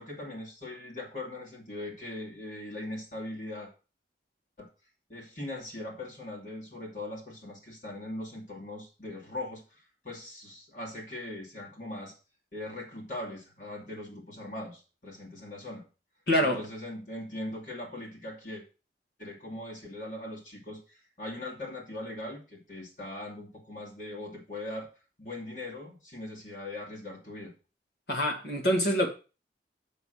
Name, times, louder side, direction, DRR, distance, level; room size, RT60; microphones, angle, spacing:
voice 1, 0.0-3.7 4.6-4.7 5.1-12.1 12.5-15.8 16.4-18.6 19.2-24.9 25.2-27.5, left 1 dB, 45° left, 2.4 m, -40 dB
voice 2, 16.3-16.6 28.1-29.1, equal, 65° left, 2.1 m, -25 dB
6.9 x 5.6 x 6.5 m
head